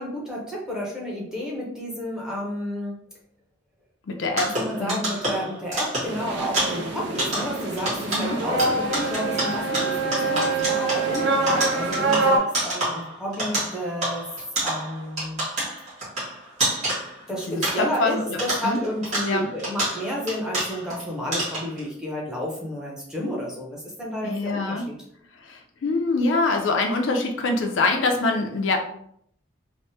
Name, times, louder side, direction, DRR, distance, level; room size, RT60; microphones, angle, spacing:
voice 1, 0.0-2.9 4.5-14.3 14.6-15.5 17.3-24.8, equal, 5° right, -4 dB, 0.6 m, -31 dB
voice 2, 4.1-5.0 8.1-8.4 17.5-18.8 19.3-19.5 24.2-24.9 25.3-28.8, left 3 dB, 70° left, 4 dB, 0.4 m, -25 dB
sound 1, 4.3-18.1 18.4-21.0 21.3-21.8, right 1 dB, 35° right, 1.4 m, -29 dB
sound 2, 6.1-12.4, right 3 dB, 60° right, 0.5 m, -25 dB
3.4 x 2.0 x 2.7 m, 0.67 s
head